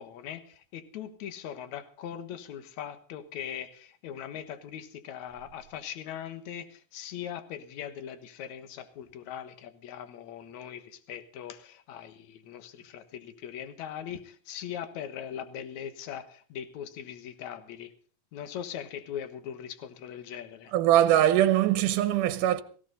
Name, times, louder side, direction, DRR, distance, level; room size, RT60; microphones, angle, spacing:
voice 1, 0.0-17.9 18.3-20.7, left 9 dB, 70° left, 2.6 m, -40 dB
voice 2, 20.7-22.6, right 12 dB, 85° right, 2.5 m, -22 dB
18.0 x 16.5 x 4.0 m
omnidirectional pair, 3.6 m